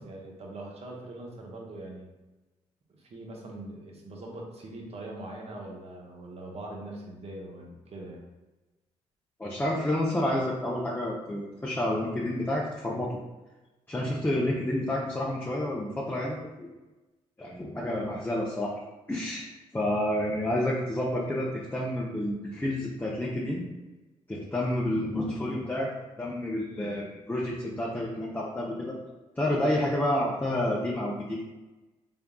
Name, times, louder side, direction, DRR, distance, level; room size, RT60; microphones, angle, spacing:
voice 1, 0.0-2.1 2.9-8.2, right 1 dB, 45° right, -1 dB, 0.9 m, -42 dB
voice 2, 9.4-13.1 13.9-16.7 17.4-18.7 19.1-19.5 19.7-23.6 24.3-25.9 26.2-29.0 29.4-31.4, left 1 dB, 15° left, -4 dB, 0.6 m, -29 dB
3.6 x 3.5 x 2.2 m, 1.1 s
supercardioid pair, 55°, 14 cm